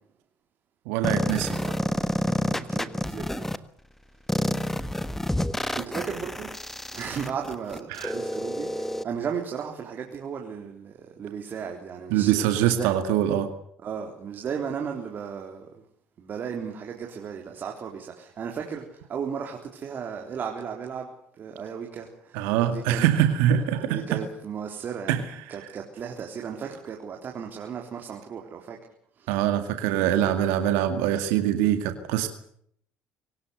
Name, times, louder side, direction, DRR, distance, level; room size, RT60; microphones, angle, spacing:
voice 1, 0.9-1.6 7.9-8.1 12.1-13.5 22.3-24.2 25.1-25.2 29.3-32.3, right 11 dB, 80° right, 8 dB, 2.1 m, -23 dB
sound 1, 1.0-3.6 4.3-9.0, left 1 dB, 5° left, 1.5 m, -28 dB
voice 2, 2.5-3.5 5.7-12.9 13.8-15.7 16.2-23.1 23.5-25.2 25.5-28.8 29.2-29.4, right 7 dB, 45° right, 1 dB, 3.8 m, -35 dB
24.0 x 18.5 x 8.1 m, 0.67 s
supercardioid pair, 75°, 4 cm